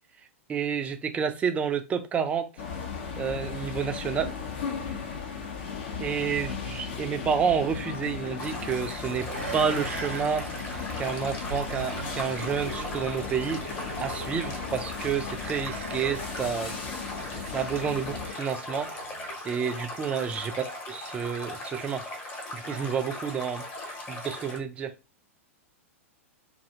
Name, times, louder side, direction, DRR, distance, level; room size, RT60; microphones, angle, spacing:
voice 1, 0.5-2.5 3.2-4.3 6.0-10.5 11.0-16.8 17.5-18.9 19.4-20.5 20.9-22.1 22.5-24.9, right 7 dB, 15° right, 0.4 m, -30 dB
sound 1, 2.6-18.3, left 6 dB, 50° left, 0.6 m, -36 dB
sound 2, 7.9-19.4 19.8-19.9, right 5 dB, 70° right, 0.6 m, -42 dB
Stream, 8.4-24.6, left 1 dB, 25° left, 0.8 m, -39 dB
2.3 x 2.1 x 2.7 m
figure-of-eight pair, 100°, 7 cm